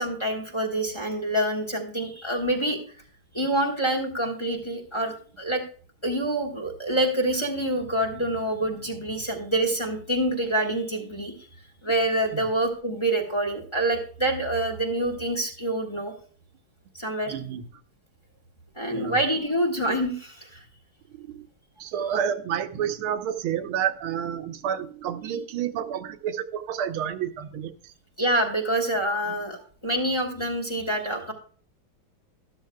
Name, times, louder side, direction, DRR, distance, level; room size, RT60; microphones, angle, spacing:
voice 1, 0.0-2.8 3.3-5.6 6.0-11.3 11.8-16.1 16.9-17.4 18.8-20.6 28.2-29.6 29.8-31.3, right 1 dB, 15° left, 3 dB, 1.4 m, -26 dB
voice 2, 17.3-17.7 18.9-19.2 21.1-21.5 21.8-27.9 29.2-29.4, right 9 dB, 85° right, 8 dB, 1.7 m, -30 dB
13.0 x 12.0 x 2.2 m, 0.43 s
omnidirectional pair, 2.3 m